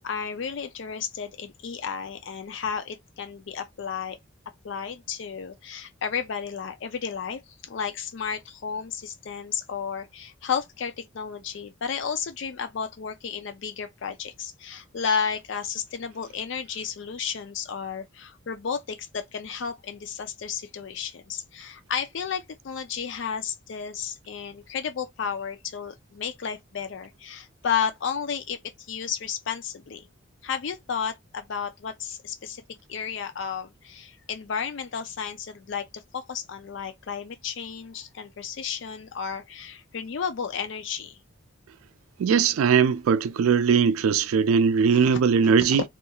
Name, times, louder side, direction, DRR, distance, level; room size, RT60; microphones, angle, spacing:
voice 1, 0.0-4.2 4.6-30.1 30.4-32.6 32.9-41.2 44.9-45.2, left 7 dB, 60° left, 0.4 m, -32 dB
voice 2, 42.2-45.8, right 6 dB, 90° right, 0.3 m, -20 dB
2.4 x 2.3 x 2.8 m
head